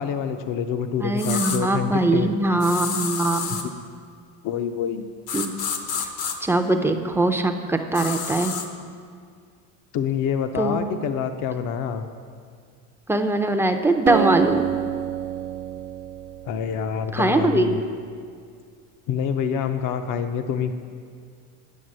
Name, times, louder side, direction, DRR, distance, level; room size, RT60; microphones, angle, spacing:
voice 1, 0.0-2.4 4.4-5.1 9.9-12.1 16.5-17.8 19.1-20.7, left 7 dB, 55° left, 8 dB, 0.6 m, -26 dB
voice 2, 1.0-3.6 5.3-5.5 6.0-6.1 6.4-8.5 10.5-11.0 13.1-14.6 17.1-17.8, right 2 dB, 5° right, 5 dB, 0.4 m, -22 dB
sound 1, 1.2-1.6 2.6-3.7 5.3-6.4 7.9-8.7, left 6 dB, 80° left, 1.2 m, -29 dB
Acoustic guitar, 14.1-17.6, right 11 dB, 75° right, 0.7 m, -28 dB
9.6 x 5.9 x 7.6 m, 2.1 s
cardioid pair, 125°, 40 cm